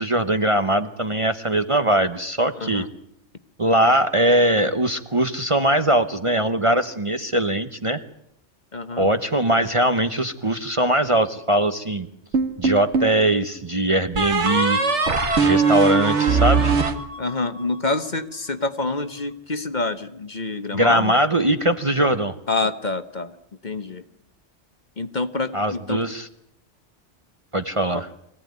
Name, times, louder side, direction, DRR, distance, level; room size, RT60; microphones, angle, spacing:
voice 1, 0.0-2.8 3.6-8.0 9.0-12.1 12.6-14.8 15.4-16.7 20.7-22.3 25.5-26.3 27.5-28.1, right 1 dB, 30° right, 9 dB, 0.9 m, -21 dB
voice 2, 2.5-2.9 8.7-9.1 17.2-21.1 22.5-23.3 23.6-24.0 25.0-26.0 27.9-28.0, left 3 dB, 40° left, 10 dB, 1.2 m, -27 dB
sound 1, 12.3-13.2 14.1-17.6, right 4 dB, 70° right, 2.1 m, -20 dB
24.0 x 16.5 x 9.5 m, 0.74 s
omnidirectional pair, 1.2 m